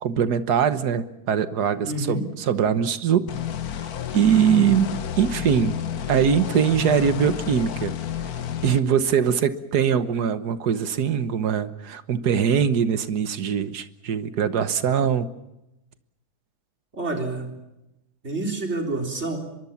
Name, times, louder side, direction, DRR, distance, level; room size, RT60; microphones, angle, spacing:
voice 1, 0.0-3.3 4.1-4.9 5.2-5.8 6.1-7.9 8.6-15.3, right 8 dB, 80° right, 12 dB, 1.7 m, -22 dB
voice 2, 1.8-2.2 16.9-17.5 18.2-19.4, right 2 dB, 45° right, 2 dB, 4.2 m, -28 dB
sound 1, 3.3-8.8, left 10 dB, 70° left, 1.5 m, -30 dB
24.0 x 22.5 x 7.2 m, 0.92 s
omnidirectional pair, 1.7 m